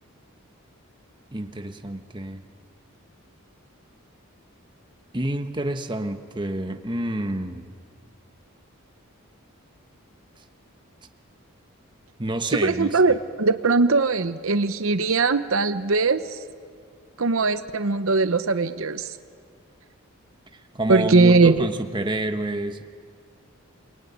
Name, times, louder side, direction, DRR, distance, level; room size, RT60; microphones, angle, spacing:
voice 1, 1.3-2.4 5.1-7.7 12.2-13.2 20.5-22.8, right 1 dB, 20° right, 7 dB, 1.2 m, -29 dB
voice 2, 12.6-16.4 17.2-19.1 20.9-21.7, right 3 dB, 70° right, 11 dB, 0.9 m, -20 dB
28.5 x 21.5 x 9.5 m, 2.2 s
head